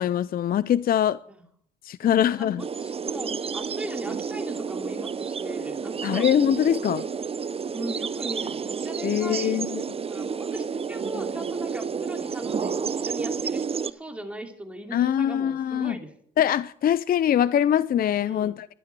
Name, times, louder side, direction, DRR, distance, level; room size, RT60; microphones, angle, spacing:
voice 1, 0.0-1.2 1.8-2.6 6.0-7.0 9.0-9.8 14.9-16.0 16.4-18.7, left 10 dB, 50° left, 0.4 m, -23 dB
voice 2, 2.0-6.3 6.8-7.1 7.7-9.6 10.1-16.1 18.2-18.6, right 1 dB, 5° right, 2.8 m, -39 dB
sound 1, 2.6-13.9, right 6 dB, 30° right, 0.6 m, -30 dB
12.5 x 11.5 x 6.8 m
cardioid pair, 90°, 20 cm